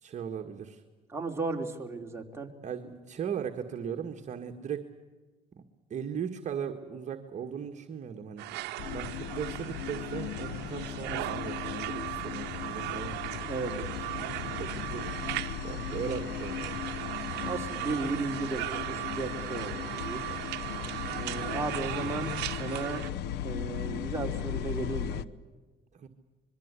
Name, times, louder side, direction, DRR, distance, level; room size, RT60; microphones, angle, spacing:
voice 1, 0.0-0.8 2.6-4.9 5.5-5.6 5.9-8.5 8.9-13.2 13.8-16.6 20.8-21.2 25.9-26.1, right 8 dB, 45° right, 4 dB, 1.8 m, -38 dB
voice 2, 1.1-2.5 13.5-13.7 17.4-20.2 21.1-23.0 23.4-25.2, right 3 dB, 15° right, 1 dB, 3.4 m, -35 dB
sound 1, 8.4-23.1, right 18 dB, 85° right, 0.8 m, -37 dB
sound 2, 8.8-25.2, left 10 dB, 80° left, 1.0 m, -37 dB
26.0 x 22.5 x 8.3 m, 1.3 s
cardioid pair, 110°, 17 cm